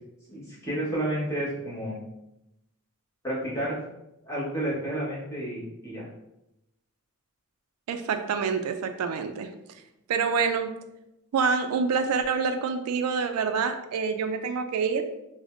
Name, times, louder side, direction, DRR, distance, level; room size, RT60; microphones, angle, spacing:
voice 1, 0.3-2.0 3.2-3.8 4.2-6.1, right 1 dB, 15° left, 1.3 m, -31 dB
voice 2, 7.9-9.5 10.1-10.7 11.3-15.0, right 5 dB, 80° right, 0.3 m, -26 dB
4.9 x 2.0 x 2.5 m
head